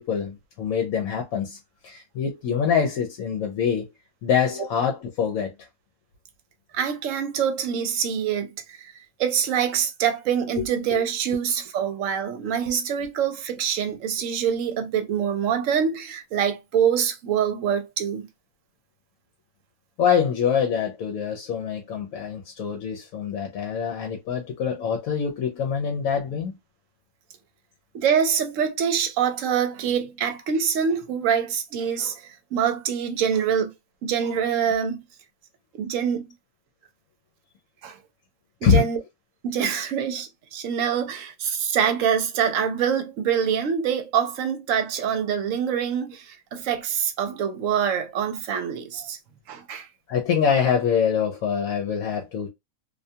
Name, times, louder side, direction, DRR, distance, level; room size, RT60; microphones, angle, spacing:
voice 1, 0.0-1.6 1.8-3.9 4.2-5.5 20.0-26.6 38.6-38.9 50.1-52.5, left 7 dB, 75° left, 1.0 m, -24 dB
voice 2, 6.7-8.9 9.2-18.3 27.9-33.7 34.0-35.0 35.7-36.3 37.8-38.0 38.6-39.0 39.4-49.2 49.5-49.9, right 8 dB, 70° right, 0.9 m, -25 dB
2.5 x 2.2 x 2.6 m
omnidirectional pair, 1.5 m